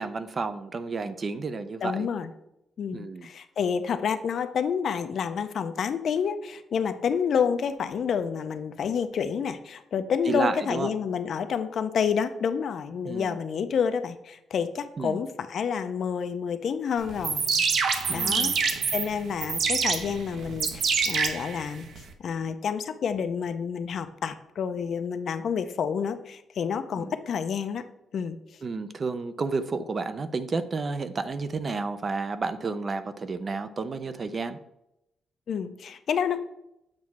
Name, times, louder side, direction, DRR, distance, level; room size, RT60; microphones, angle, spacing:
voice 1, 0.0-2.1 2.9-3.3 10.3-10.9 13.1-13.4 15.0-15.2 18.1-18.6 27.0-27.2 28.6-34.6, right 4 dB, 30° right, 11 dB, 0.4 m, -31 dB
voice 2, 1.8-2.3 2.8-17.5 18.1-18.5 18.9-21.8 22.2-27.8 28.1-28.4 35.5-36.4, left 7 dB, 50° left, 10 dB, 0.5 m, -29 dB
sound 1, 17.1-22.1, right 5 dB, 55° right, 0.8 m, -26 dB
7.5 x 3.1 x 5.9 m, 0.84 s
cardioid pair, 165°, 0 cm